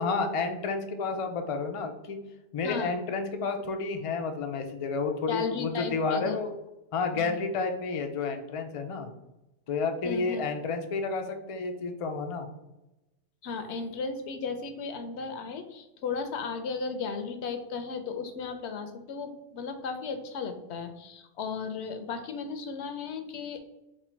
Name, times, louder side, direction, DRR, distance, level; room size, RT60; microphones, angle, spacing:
voice 1, 0.0-2.2 2.5-6.5 6.9-9.1 9.7-12.5, left 4 dB, 55° left, 5 dB, 0.3 m, -30 dB
voice 2, 2.6-2.9 5.3-6.4 7.1-7.4 10.0-10.4 13.4-23.6, left 5 dB, 75° left, 8 dB, 0.9 m, -35 dB
4.3 x 2.2 x 4.3 m, 0.95 s
omnidirectional pair, 1.2 m